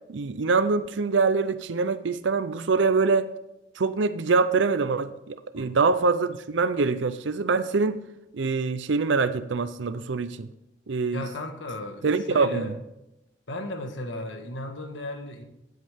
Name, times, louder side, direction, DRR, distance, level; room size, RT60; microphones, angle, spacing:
voice 1, 0.1-3.3 3.8-8.0 8.3-10.5 10.9-11.2 12.0-12.7, right 4 dB, 80° right, 0.5 m, -24 dB
voice 2, 11.1-12.8 13.5-15.4, left 1 dB, 85° left, 1.5 m, -35 dB
15.5 x 8.1 x 3.6 m
head